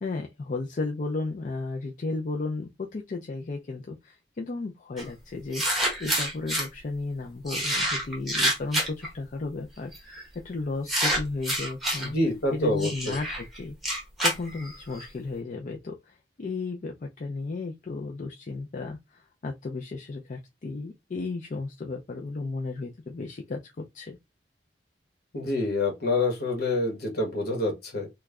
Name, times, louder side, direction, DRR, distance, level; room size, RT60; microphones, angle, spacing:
voice 1, 0.0-10.2 10.4-12.2 12.5-13.8 14.2-24.2, left 3 dB, 45° left, 0.4 m, -34 dB
sound 1, 5.0-5.1 5.5-6.7 7.5-9.1 9.9-10.2 10.9-12.1 12.8-15.0, right 1 dB, ahead, 1.1 m, -27 dB
voice 2, 12.0-13.1 25.3-28.1, left 2 dB, 65° left, 1.3 m, -27 dB
3.0 x 2.3 x 3.5 m
head